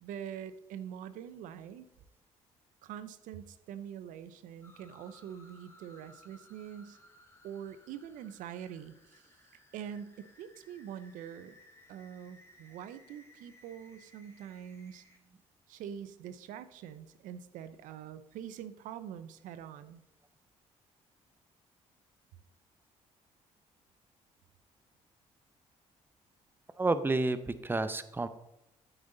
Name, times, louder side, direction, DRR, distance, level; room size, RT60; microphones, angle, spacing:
voice 1, 0.0-1.9 2.8-7.0 7.4-9.3 9.7-11.6 11.9-15.0 15.7-20.0, right 9 dB, 85° right, 12 dB, 0.6 m, -44 dB
sound 1, 4.6-15.2, left 1 dB, 20° left, 1.9 m, -61 dB
voice 2, 26.8-28.3, right 2 dB, 15° right, 12 dB, 0.7 m, -30 dB
9.0 x 7.9 x 3.8 m, 0.89 s
cardioid pair, 75°, 13 cm